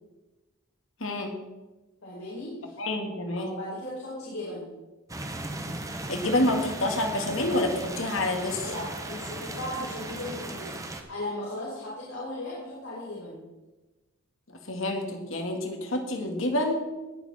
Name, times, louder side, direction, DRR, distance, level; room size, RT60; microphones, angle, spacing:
voice 1, 1.0-1.3 2.8-3.5 6.1-8.7 14.7-16.8, left 1 dB, 70° left, 3 dB, 2.1 m, -28 dB
voice 2, 2.0-2.8 3.3-4.8 8.6-13.5, left 1 dB, 85° left, -8 dB, 4.8 m, -37 dB
sound 1, 5.1-11.0, right 1 dB, 15° right, 1.1 m, -37 dB
19.5 x 7.2 x 4.3 m, 1.1 s
head